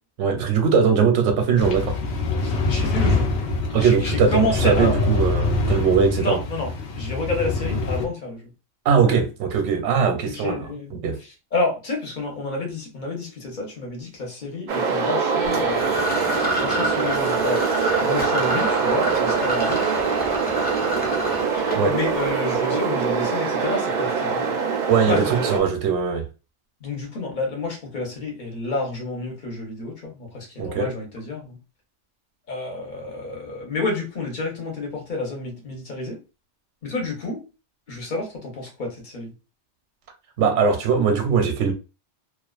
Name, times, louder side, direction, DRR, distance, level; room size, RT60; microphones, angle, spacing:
voice 1, 0.2-2.0 3.7-6.4 8.8-11.2 21.8-21.9 24.9-26.3 30.6-30.9 40.4-41.7, right 6 dB, 85° right, 0.9 m, -20 dB
sound 1, 1.6-8.1, left 3 dB, 70° left, 0.8 m, -24 dB
voice 2, 2.4-3.3 3.8-5.0 6.2-6.7 7.0-8.5 10.3-17.6 18.0-19.9 21.5-24.6 25.1-25.3 26.8-31.6 32.5-36.2 36.8-37.4 37.9-39.3, left 2 dB, 45° left, 0.9 m, -29 dB
sound 2, 14.7-25.6, right 5 dB, 60° right, 0.5 m, -23 dB
sound 3, 15.5-22.3, equal, 10° left, 0.5 m, -29 dB
2.4 x 2.3 x 2.3 m
omnidirectional pair, 1.2 m